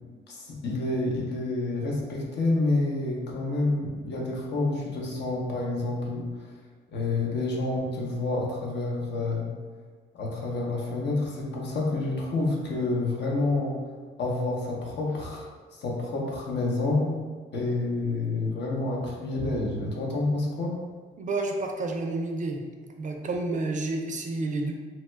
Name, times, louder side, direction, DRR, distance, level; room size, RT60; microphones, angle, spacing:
voice 1, 0.3-6.5 6.9-9.5 10.1-13.8 14.2-15.5 15.8-17.1 17.5-20.8, left 2 dB, 60° left, -2 dB, 0.8 m, -28 dB
voice 2, 21.2-22.6 23.0-24.7, right 2 dB, 40° right, 2 dB, 0.4 m, -30 dB
2.9 x 2.1 x 3.3 m, 1.5 s
cardioid pair, 90°, 20 cm